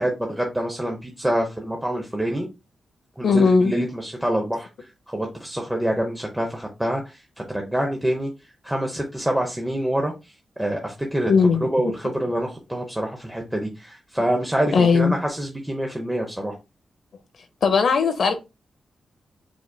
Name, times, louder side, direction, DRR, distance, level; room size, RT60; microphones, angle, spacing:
voice 1, 0.0-2.5 3.2-4.7 5.1-7.2 7.5-8.3 8.6-10.1 10.6-11.3 11.6-16.5, right 1 dB, 10° right, 0.8 m, -26 dB
voice 2, 3.2-3.7 11.3-11.9 14.7-15.2 17.6-18.3, left 5 dB, 75° left, 0.6 m, -18 dB
5.1 x 3.9 x 2.2 m
wide cardioid pair, 115°, 0 cm